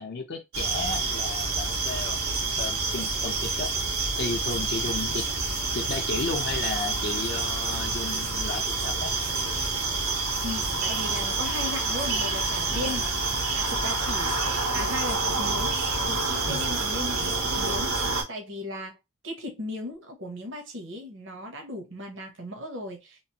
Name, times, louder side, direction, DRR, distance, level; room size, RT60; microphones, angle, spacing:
voice 1, 0.0-2.2 2.6-3.7 4.2-5.3 5.7-9.1 12.7-12.9 16.5-16.8, left 3 dB, 50° left, 0.5 m, -34 dB
sound 1, 0.5-18.2, right 3 dB, 90° right, 1.2 m, -28 dB
voice 2, 10.4-13.1 13.5-19.0 19.2-23.3, left 1 dB, 60° right, 0.8 m, -37 dB
3.0 x 2.5 x 2.8 m
head